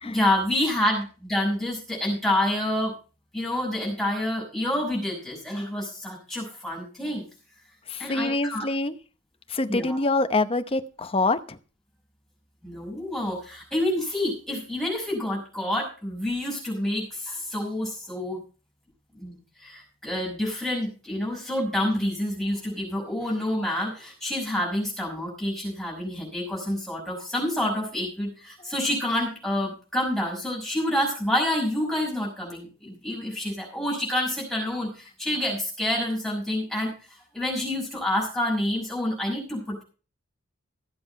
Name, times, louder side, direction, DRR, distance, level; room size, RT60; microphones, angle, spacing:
voice 1, 0.0-2.9 3.3-7.2 8.0-8.7 9.7-10.0 12.6-18.4 19.1-19.3 19.6-39.8, left 1 dB, ahead, -3 dB, 5.7 m, -28 dB
voice 2, 7.9-8.9 9.5-11.6, left 2 dB, 25° left, 10 dB, 0.8 m, -25 dB
15.0 x 7.9 x 5.5 m, 0.36 s
head